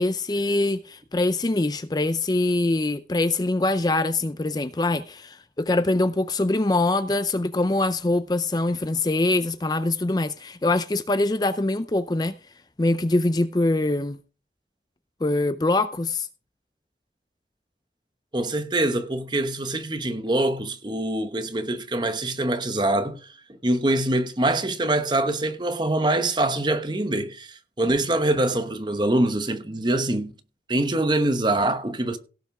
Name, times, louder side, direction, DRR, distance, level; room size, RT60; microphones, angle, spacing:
voice 1, 0.0-12.3 12.8-14.2 15.2-16.3, left 2 dB, 20° left, 0.5 m, -23 dB
voice 2, 18.3-23.3 23.6-30.3 30.7-32.2, right 1 dB, 25° right, 1.0 m, -24 dB
17.0 x 5.7 x 4.9 m
head